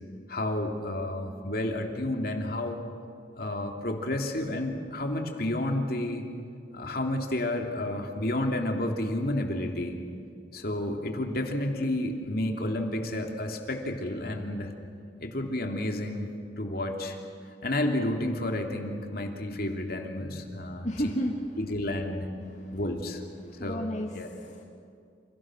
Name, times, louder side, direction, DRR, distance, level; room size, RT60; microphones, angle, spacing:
voice 1, 0.3-2.8 3.3-6.2 6.7-10.0 10.5-14.7 15.2-17.2 17.6-20.9 21.6-22.3 22.7-23.2 23.6-23.9 24.1-24.3, left 1 dB, 60° left, 3 dB, 2.9 m, -31 dB
voice 2, 20.8-21.4 22.6-22.8 23.4-24.6, equal, 45° left, 0 dB, 1.9 m, -32 dB
29.5 x 29.0 x 6.3 m, 2.4 s
head